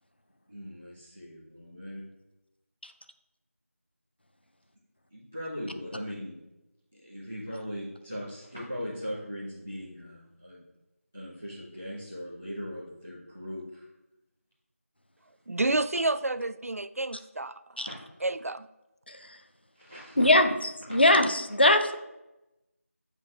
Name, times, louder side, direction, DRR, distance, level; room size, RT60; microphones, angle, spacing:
voice 1, 0.5-2.0 5.1-6.3 6.9-10.6 11.1-13.9 19.7-20.3 20.9-21.0, equal, 5° left, -12 dB, 0.6 m, -39 dB
voice 2, 15.5-17.6 18.2-18.7, right 2 dB, 70° right, 13 dB, 0.3 m, -29 dB
voice 3, 19.1-19.4 20.2-20.5 20.9-22.0, left 1 dB, 45° left, 7 dB, 0.5 m, -21 dB
7.7 x 2.7 x 5.9 m, 0.94 s
figure-of-eight pair, 175°, 8 cm